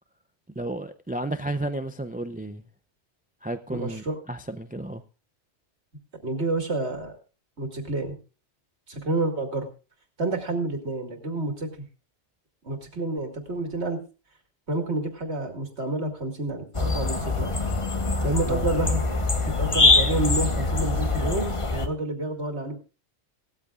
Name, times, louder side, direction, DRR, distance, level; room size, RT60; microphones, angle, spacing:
voice 1, 0.6-2.7 3.4-5.0 18.5-18.7, right 1 dB, 15° right, 0.3 m, -32 dB
voice 2, 3.7-4.2 6.2-7.1 7.6-8.2 8.9-9.7 10.2-11.9 12.6-14.0 14.7-17.5 18.2-19.0 19.6-22.8, right 2 dB, 70° right, 2.5 m, -29 dB
sound 1, 16.7-21.9, left 3 dB, 30° left, 1.1 m, -23 dB
18.0 x 13.5 x 2.4 m
omnidirectional pair, 1.2 m